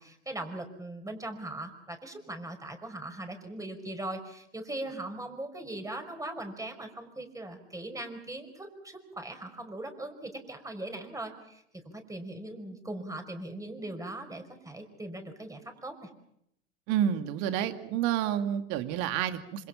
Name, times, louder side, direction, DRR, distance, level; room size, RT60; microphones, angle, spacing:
voice 1, 0.0-16.1, right 1 dB, 10° right, 6 dB, 5.3 m, -40 dB
voice 2, 16.9-19.7, right 10 dB, 55° right, 8 dB, 2.5 m, -29 dB
27.0 x 26.5 x 5.8 m, 0.75 s
hypercardioid pair, 85°, 35 cm